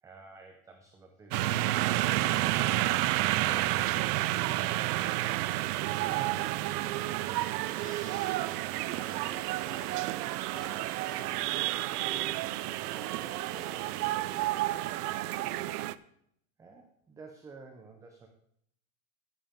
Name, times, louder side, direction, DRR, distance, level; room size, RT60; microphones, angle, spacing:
voice 1, 0.0-1.8 4.9-7.1 16.6-18.3, right 4 dB, 5° right, 3 dB, 0.4 m, -50 dB
sound 1, 1.3-15.9, right 16 dB, 75° right, 0.6 m, -30 dB
voice 2, 3.4-4.4 7.6-14.8, equal, 10° left, 1 dB, 2.0 m, -50 dB
17.0 x 7.5 x 3.6 m, 0.71 s
supercardioid pair, 155°, 47 cm